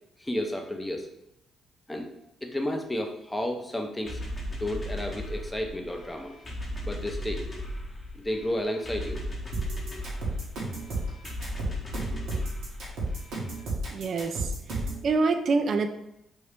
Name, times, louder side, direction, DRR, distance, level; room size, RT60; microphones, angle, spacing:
voice 1, 0.2-1.1 1.9-2.1 2.4-4.2 4.6-6.4 6.8-7.4 8.1-9.2, left 1 dB, 10° left, 3 dB, 0.6 m, -32 dB
sound 1, 4.1-13.6, equal, 30° left, 0.9 m, -37 dB
sound 2, 9.5-15.0, right 2 dB, 80° right, 1.2 m, -32 dB
voice 2, 13.9-14.5 15.0-15.9, right 4 dB, 55° right, 8 dB, 0.4 m, -25 dB
3.0 x 2.7 x 3.3 m, 0.82 s
cardioid pair, 90°, 0 cm